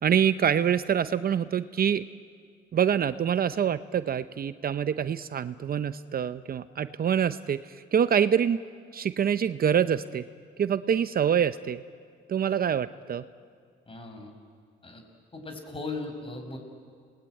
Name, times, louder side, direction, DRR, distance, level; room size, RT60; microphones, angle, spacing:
voice 1, 0.0-2.0 2.7-8.6 8.9-10.2 10.6-11.8 12.3-13.2, right 8 dB, 50° right, 13 dB, 0.8 m, -25 dB
voice 2, 13.9-14.3 14.8-15.0 15.3-16.6, left 3 dB, 25° left, 5 dB, 5.8 m, -37 dB
29.0 x 20.0 x 9.1 m, 2.1 s
cardioid pair, 90°, 20 cm